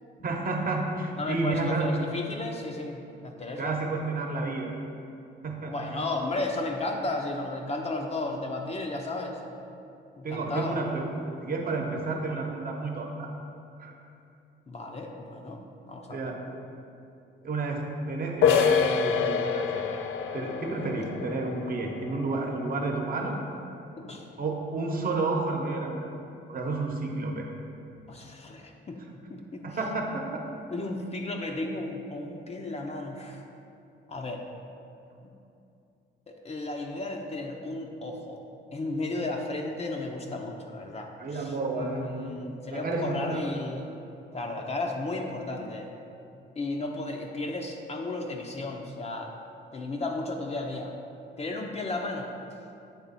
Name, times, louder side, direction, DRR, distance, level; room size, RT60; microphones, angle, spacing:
voice 1, 0.2-1.9 3.6-4.7 5.4-5.8 10.2-11.0 11.4-13.3 13.8-13.9 16.1-16.4 17.4-20.0 20.3-23.4 24.4-26.1 26.5-27.5 29.6-30.4 41.2-42.1 42.7-43.4, right 3 dB, 45° right, 1 dB, 0.9 m, -31 dB
voice 2, 1.2-3.7 5.7-9.4 10.2-10.8 14.7-15.6 15.9-16.3 24.0-24.3 28.1-29.0 29.3-29.6 30.7-33.4 34.1-34.5 36.3-38.4 38.7-43.9 44.3-45.9 46.6-49.3 49.7-50.9 51.4-52.3, left 2 dB, 35° left, 1 dB, 0.6 m, -34 dB
sound 1, 18.4-23.9, left 7 dB, 80° left, 0.4 m, -28 dB
8.1 x 3.4 x 4.1 m, 2.7 s
cardioid pair, 90°, 20 cm